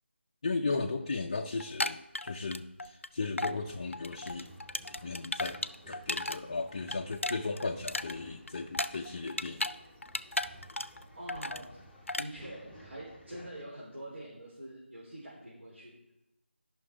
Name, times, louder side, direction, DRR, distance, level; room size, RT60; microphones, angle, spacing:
voice 1, 0.4-4.5 5.0-9.6, left 3 dB, 25° left, 2 dB, 0.4 m, -36 dB
sound 1, 1.6-3.1 3.4-3.6 3.9-6.4 6.7-9.8 10.0-11.0 11.3-11.7 12.1-12.3, left 2 dB, 85° left, 0.5 m, -35 dB
Male speech man speaking / Chatter / Rattle, 3.6-13.6, equal, ahead, 0.8 m, -55 dB
voice 2, 11.1-11.8 12.2-15.9, right 1 dB, 70° right, -7 dB, 3.3 m, -45 dB
13.0 x 5.8 x 3.4 m, 0.87 s
figure-of-eight pair, 160°, 7 cm